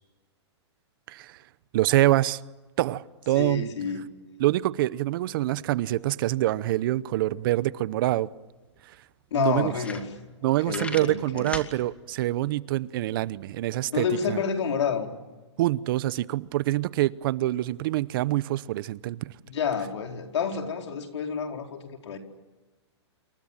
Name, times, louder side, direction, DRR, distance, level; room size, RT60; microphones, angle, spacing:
voice 1, 1.1-1.4 1.7-2.4 2.8-3.7 4.4-8.3 9.3-9.7 10.4-14.4 15.6-19.3, right 16 dB, 50° right, 0.9 m, -25 dB
voice 2, 3.3-4.0 9.3-10.1 10.4-11.6 13.9-15.1 19.4-22.2, left 6 dB, 75° left, 4.6 m, -29 dB
sound 1, 8.3-8.4 8.7-8.8 9.3-9.4 9.7-10.4 10.7-11.7, left 3 dB, 10° left, 2.6 m, -36 dB
28.0 x 24.0 x 7.4 m
hypercardioid pair, 140°, 15 cm